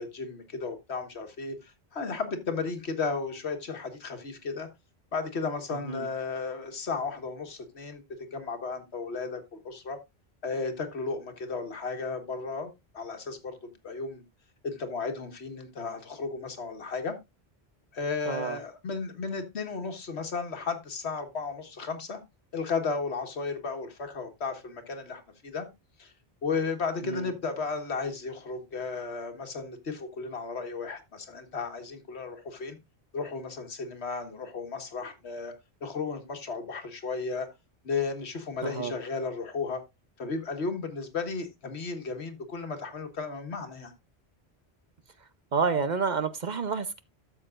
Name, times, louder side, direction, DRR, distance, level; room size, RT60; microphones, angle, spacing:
voice 1, 0.0-4.7 5.1-8.0 8.3-10.0 10.4-14.2 14.6-17.2 17.9-22.2 22.5-25.7 26.0-26.1 26.4-32.8 33.1-35.5 35.8-37.5 37.8-39.8 40.2-43.9, left 4 dB, 80° left, 1.7 m, -34 dB
voice 2, 18.3-18.6 27.0-27.3 38.6-38.9 45.5-47.0, right 5 dB, 50° right, 0.8 m, -29 dB
13.0 x 7.1 x 2.5 m
omnidirectional pair, 1.1 m